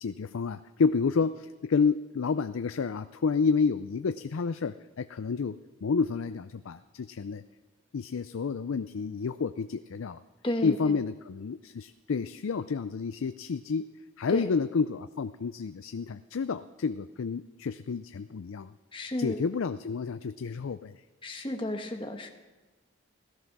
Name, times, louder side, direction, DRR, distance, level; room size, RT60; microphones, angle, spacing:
voice 1, 0.0-7.4 7.9-10.2 10.6-13.9 14.2-18.7 19.2-21.0, left 5 dB, 85° left, 11 dB, 0.5 m, -30 dB
voice 2, 10.4-11.0 14.3-14.5 18.9-19.4 21.2-22.3, left 1 dB, 25° left, 4 dB, 1.4 m, -33 dB
16.5 x 13.5 x 6.0 m, 1.2 s
head